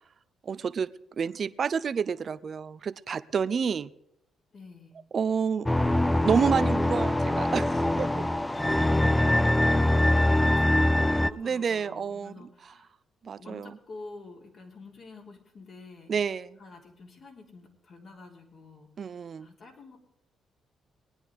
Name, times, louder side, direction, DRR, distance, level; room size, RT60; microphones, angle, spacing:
voice 1, 0.4-0.9 1.2-3.9 5.1-5.7 6.2-8.3 11.3-12.5 13.2-13.8 16.1-16.6 19.0-19.5, right 6 dB, 50° right, 15 dB, 0.6 m, -29 dB
voice 2, 4.5-4.9 8.7-12.9 13.4-16.1 16.6-20.0, left 3 dB, 50° left, 1 dB, 3.6 m, -48 dB
sound 1, 5.7-11.3, left 1 dB, 10° left, 0.5 m, -23 dB
21.5 x 9.9 x 3.6 m, 0.81 s
cardioid pair, 95°, 0 cm